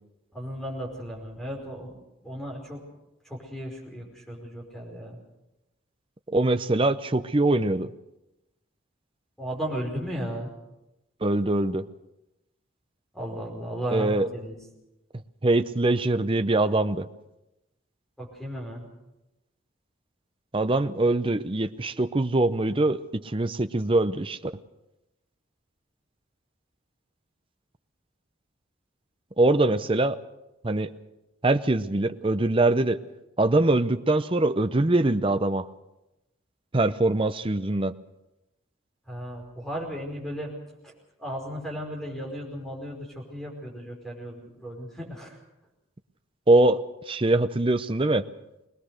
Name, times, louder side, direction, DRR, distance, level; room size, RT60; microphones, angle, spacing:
voice 1, 0.3-1.9 2.2-2.8 3.2-5.2 9.4-10.5 13.1-14.6 18.2-18.9 39.1-40.5 40.8-40.9 41.2-45.4, equal, ahead, -1 dB, 5.1 m, -35 dB
voice 2, 6.3-7.9 11.2-11.8 13.9-14.3 15.4-17.1 20.5-24.4 29.4-30.2 30.6-30.9 31.4-33.0 33.4-35.7 36.7-37.9 46.5-48.2, right 2 dB, 25° right, 10 dB, 0.7 m, -23 dB
21.5 x 20.0 x 6.6 m, 0.95 s
head